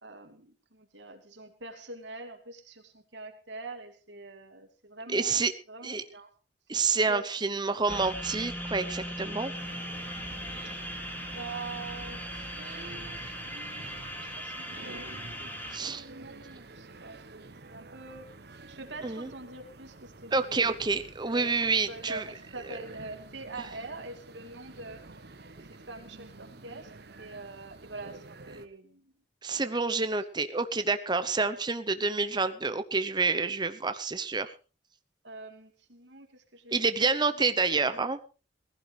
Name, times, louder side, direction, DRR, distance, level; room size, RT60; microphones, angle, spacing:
voice 1, 0.0-6.3 7.1-7.4 10.6-10.8 11.3-18.3 18.7-20.9 21.2-25.0 25.9-29.1 29.5-29.8 35.2-37.4, right 3 dB, 80° right, 5 dB, 2.6 m, -45 dB
voice 2, 5.1-5.5 5.8-6.0 6.7-9.5 15.7-16.0 19.0-19.3 20.3-22.2 22.7-22.8 29.4-34.5 36.7-38.2, right 4 dB, 25° right, 10 dB, 0.8 m, -28 dB
sound 1, 7.9-15.8, equal, 10° left, 2.4 m, -39 dB
sound 2, 9.5-28.7, right 3 dB, 60° right, 1.1 m, -49 dB
18.5 x 15.5 x 3.3 m, 0.33 s
head